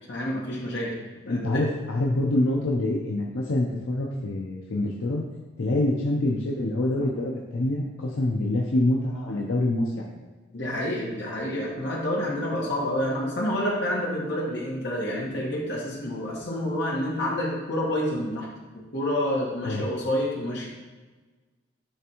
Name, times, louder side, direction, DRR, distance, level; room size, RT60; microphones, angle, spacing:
voice 1, 0.1-0.9 1.3-1.6 10.5-18.5 18.7-20.7, left 1 dB, 60° left, -3 dB, 1.4 m, -28 dB
voice 2, 1.3-5.2 5.6-10.2 19.6-19.8, left 1 dB, 85° left, -1 dB, 0.6 m, -26 dB
9.7 x 3.4 x 3.0 m, 1.3 s
head